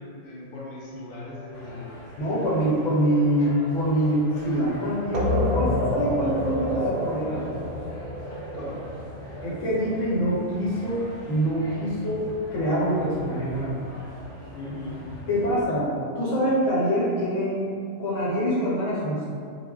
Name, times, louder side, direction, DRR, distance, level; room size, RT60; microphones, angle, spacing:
voice 1, 0.0-1.9 8.5-8.8 14.5-15.1, left 2 dB, 55° left, -8 dB, 0.8 m, -38 dB
sound 1, 1.5-15.6, equal, 25° left, 0.3 m, -43 dB
voice 2, 2.2-7.5 9.4-13.8 15.3-17.6 18.0-19.3, equal, 75° left, -7 dB, 1.1 m, -25 dB
sound 2, 5.1-10.5, left 1 dB, 60° right, 0.6 m, -29 dB
2.3 x 2.0 x 3.6 m, 2.3 s
omnidirectional pair, 1.3 m